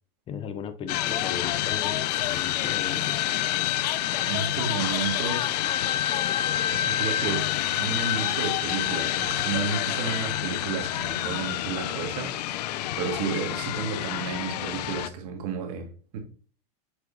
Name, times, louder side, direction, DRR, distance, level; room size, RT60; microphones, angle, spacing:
voice 1, 0.3-3.2, left 8 dB, 25° left, 0.6 m, -37 dB
sound 1, 0.9-15.1, left 12 dB, 85° left, 0.5 m, -28 dB
voice 2, 4.2-5.6 6.7-12.4 13.0-16.2, right 6 dB, 65° right, 1.9 m, -32 dB
7.9 x 4.9 x 2.6 m
supercardioid pair, 140°, 20 cm